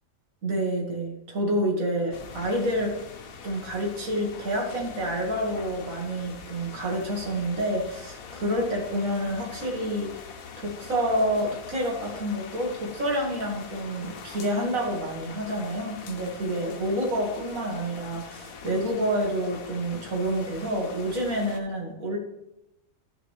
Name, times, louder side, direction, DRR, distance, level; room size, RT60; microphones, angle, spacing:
voice 1, 0.4-2.9 3.4-10.1 10.6-22.2, equal, 80° right, -1 dB, 2.3 m, -28 dB
Rain Fading storm in a Yard, 2.1-21.6, left 5 dB, 90° left, 1.3 m, -43 dB
12.5 x 5.1 x 3.2 m, 0.84 s
omnidirectional pair, 1.4 m